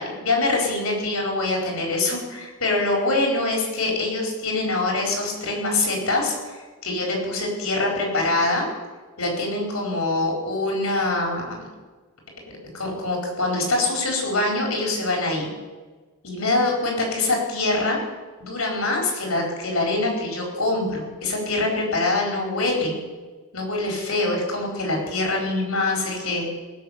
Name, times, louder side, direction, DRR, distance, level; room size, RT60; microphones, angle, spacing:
voice 1, 0.0-8.7 9.2-11.6 12.7-15.5 16.2-18.0 18.4-23.0 23.5-26.5, left 2 dB, 70° left, 0 dB, 4.5 m, -24 dB
19.0 x 6.5 x 8.2 m, 1.3 s
head